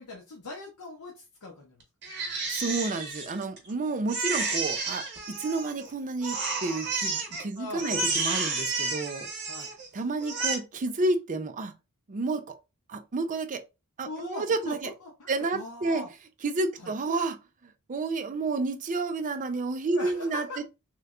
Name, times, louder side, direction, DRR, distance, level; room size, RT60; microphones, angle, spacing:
voice 1, 0.0-1.8 7.6-8.2 9.5-9.7 14.0-16.1 16.8-16.9 19.9-20.6, left 3 dB, 80° left, 0.7 m, -41 dB
Crying sobbing, 2.0-3.7 4.1-5.9 6.2-7.4 7.8-9.9 10.2-10.5, right 3 dB, 50° right, 1.2 m, -31 dB
voice 2, 2.5-9.3 9.9-11.7 12.1-12.6 12.9-13.6 14.0-14.9 15.3-16.1 16.4-17.4 17.9-20.6, right 3 dB, 35° right, 0.4 m, -30 dB
3.2 x 3.0 x 2.4 m
head